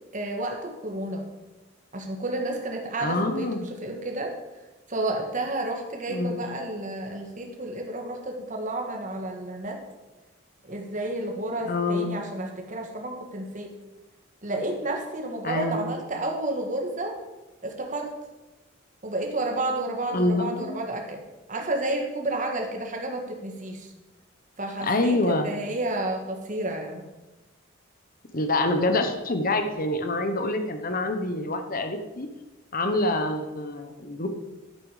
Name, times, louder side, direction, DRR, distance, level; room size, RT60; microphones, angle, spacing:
voice 1, 0.1-1.3 1.9-4.3 4.9-9.8 10.6-13.7 14.4-17.1 17.6-18.1 19.0-21.2 21.5-23.9 24.6-27.0, right 2 dB, 40° right, 2 dB, 1.6 m, -31 dB
voice 2, 3.0-3.7 6.1-6.4 11.6-12.2 15.4-15.9 20.1-20.9 24.8-25.5 28.3-32.3 32.7-34.3, left 2 dB, 45° left, 7 dB, 1.1 m, -26 dB
10.5 x 8.5 x 5.0 m, 1.1 s
head